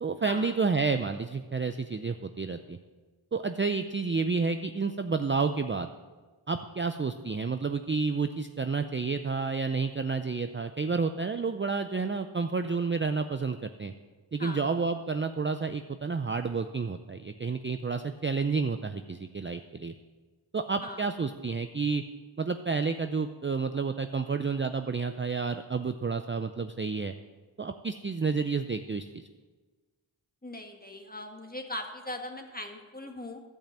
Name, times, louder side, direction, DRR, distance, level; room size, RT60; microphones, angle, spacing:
voice 1, 0.0-2.8 3.3-5.9 6.5-13.9 14.3-19.9 20.5-22.0 22.4-27.1 27.6-29.2, right 4 dB, 25° right, 8 dB, 0.5 m, -30 dB
voice 2, 30.4-33.4, left 1 dB, 20° left, 4 dB, 1.6 m, -40 dB
13.0 x 5.3 x 7.5 m, 1.3 s
cardioid pair, 40°, 49 cm